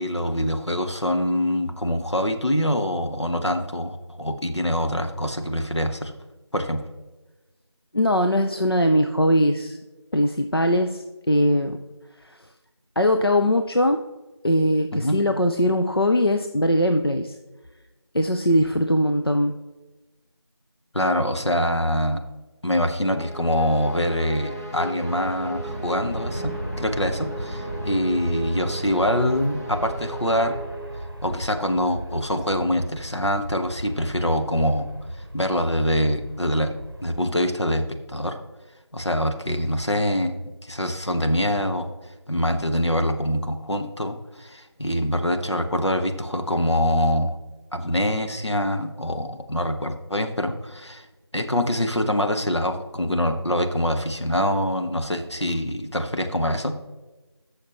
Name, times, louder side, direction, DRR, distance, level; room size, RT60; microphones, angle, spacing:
voice 1, 0.0-6.1 6.5-6.8 14.9-15.1 20.9-22.2 22.6-30.5 31.2-34.9 35.3-36.7 37.0-38.4 38.9-40.3 40.6-41.9 42.3-47.4 47.7-51.1 51.3-56.7, equal, 75° left, 5 dB, 1.3 m, -24 dB
voice 2, 7.9-9.8 10.1-11.8 12.2-12.5 13.0-14.0 14.4-17.4 18.1-19.5, equal, 60° left, 5 dB, 0.6 m, -21 dB
sound 1, 23.0-31.5, right 1 dB, 35° left, 1.1 m, -36 dB
Aircraft, 25.0-37.2, equal, 50° right, 0.8 m, -36 dB
13.5 x 6.5 x 3.1 m, 1.1 s
figure-of-eight pair, 180°, 15 cm